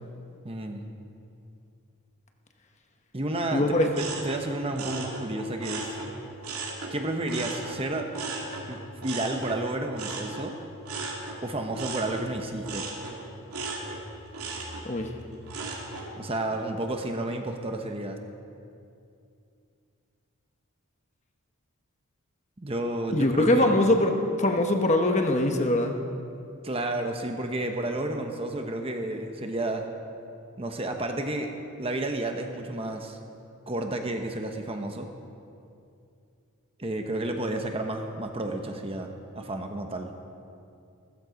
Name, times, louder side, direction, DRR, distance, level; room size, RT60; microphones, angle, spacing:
voice 1, 0.4-0.9 3.1-3.7 3.9-6.0 6.9-8.1 8.7-10.6 11.4-12.9 16.2-18.2 22.6-23.8 26.6-29.9 30.6-33.2 33.7-35.1 36.8-40.1, right 1 dB, 25° right, 4 dB, 1.0 m, -31 dB
voice 2, 3.5-3.9 14.9-15.1 23.1-25.9, left 1 dB, 30° left, 4 dB, 1.0 m, -22 dB
sound 1, 3.9-6.9 7.3-16.1 16.5-17.0, right 3 dB, 85° right, 2.6 m, -37 dB
15.5 x 14.5 x 5.2 m, 2.5 s
head